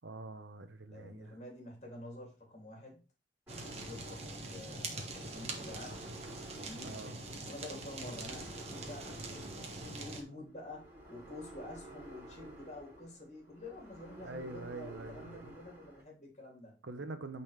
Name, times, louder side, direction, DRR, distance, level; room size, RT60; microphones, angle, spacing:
voice 1, 0.0-1.4 6.7-7.2 14.2-15.5 16.8-17.4, right 2 dB, 80° right, 0.9 m, -45 dB
voice 2, 0.8-3.0 3.6-6.0 6.5-6.9 7.4-16.7, left 1 dB, 35° left, 2.7 m, -49 dB
sound 1, 3.5-16.0, right 1 dB, 15° right, 3.1 m, -52 dB
Fire, 3.5-10.2, right 2 dB, 35° right, 1.3 m, -44 dB
9.1 x 4.2 x 3.3 m
head